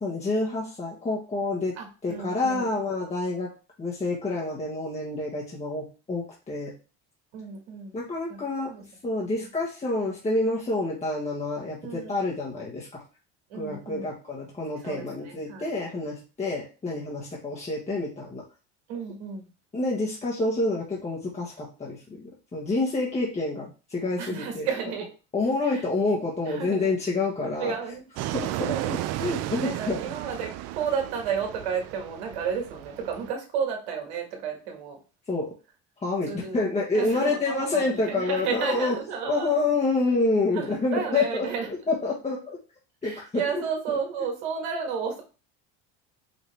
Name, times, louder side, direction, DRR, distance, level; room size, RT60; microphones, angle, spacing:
voice 1, 0.0-3.5 3.8-6.7 7.9-8.7 9.0-13.0 13.5-18.4 19.7-24.7 25.3-27.7 28.3-30.0 35.3-35.5 36.0-39.0 39.3-42.6 43.0-43.4, left 3 dB, 20° left, -3 dB, 1.3 m, -28 dB
voice 2, 1.8-2.7 7.3-8.0 8.3-8.8 9.4-9.5 11.8-12.1 13.5-14.1 14.8-15.7 18.9-19.5 24.2-25.1 25.7-25.9 26.5-27.0 27.4-28.0 28.4-28.9 29.2-35.0 36.3-36.6 36.9-39.6 40.5-41.7 43.0-45.2, right 6 dB, 85° right, 2 dB, 1.7 m, -32 dB
Fixed-wing aircraft airplane, 28.2-33.3, right 14 dB, 55° right, 0.4 m, -34 dB
5.3 x 2.8 x 3.4 m, 0.33 s
supercardioid pair, 100°, 32 cm